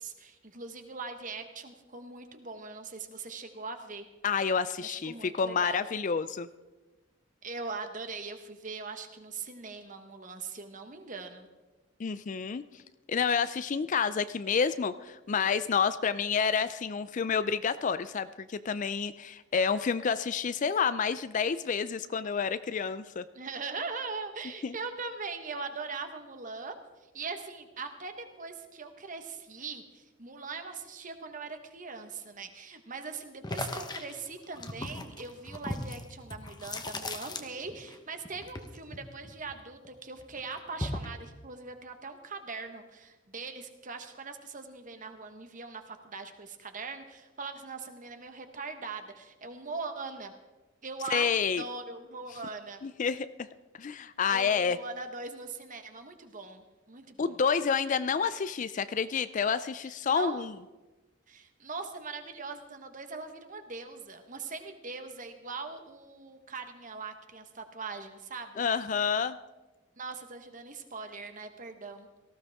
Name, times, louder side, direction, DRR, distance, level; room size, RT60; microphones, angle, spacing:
voice 1, 0.0-4.0 4.8-5.8 7.4-11.5 23.3-26.8 27.0-50.3 50.8-51.3 51.6-52.8 54.3-57.4 59.8-60.4 61.3-68.6 70.0-72.1, right 4 dB, 40° right, 7 dB, 1.3 m, -41 dB
voice 2, 4.2-6.5 12.0-12.6 13.1-23.2 24.6-24.8 51.1-51.6 52.8-53.5 53.8-54.8 57.2-60.5 68.6-69.4, left 6 dB, 40° left, 14 dB, 0.4 m, -29 dB
sound 1, 33.4-38.0 38.2-39.9 40.2-41.2, left 2 dB, 20° left, 1.1 m, -38 dB
18.0 x 15.0 x 3.6 m, 1.1 s
head